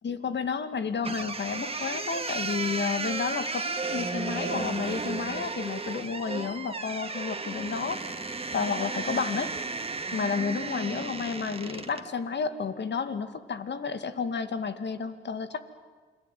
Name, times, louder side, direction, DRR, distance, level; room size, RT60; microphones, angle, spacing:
voice 1, 0.0-8.1 8.5-9.5 10.1-15.6, left 5 dB, 55° left, 10 dB, 2.4 m, -31 dB
sound 1, 1.0-12.1, right 3 dB, 25° right, 2.2 m, -34 dB
29.0 x 22.0 x 9.4 m, 1.4 s
cardioid pair, 65°, 21 cm